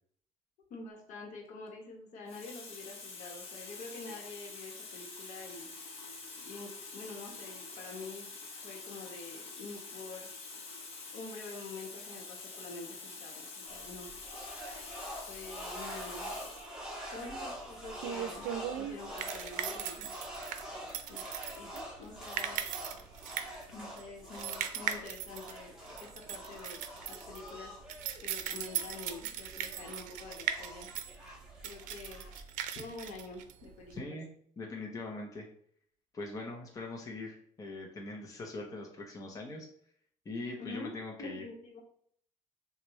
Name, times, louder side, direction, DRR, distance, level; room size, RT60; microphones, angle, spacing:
voice 1, 0.7-5.7 6.4-8.3 8.6-10.3 11.1-14.1 15.3-16.3 17.1-18.5 18.8-20.1 21.1-21.3 21.5-22.6 23.7-26.8 27.1-27.7 28.2-30.9 31.6-32.3 32.7-34.2 40.6-40.9 41.2-41.8, left 3 dB, 75° left, 1 dB, 1.2 m, -46 dB
Water tap faucet, 1.5-1.7 2.3-16.8 17.7-17.8, left 4 dB, 50° left, 1.2 m, -46 dB
sound 1, 13.7-32.4, equal, 5° right, 1.4 m, -45 dB
sound 2, 17.3-34.0, right 10 dB, 90° right, 0.5 m, -39 dB
voice 2, 33.9-34.3 34.6-35.5 36.1-39.7 40.2-41.4, left 2 dB, 25° left, 0 dB, 0.9 m, -42 dB
6.0 x 2.5 x 3.1 m, 0.63 s
cardioid pair, 125°, 13 cm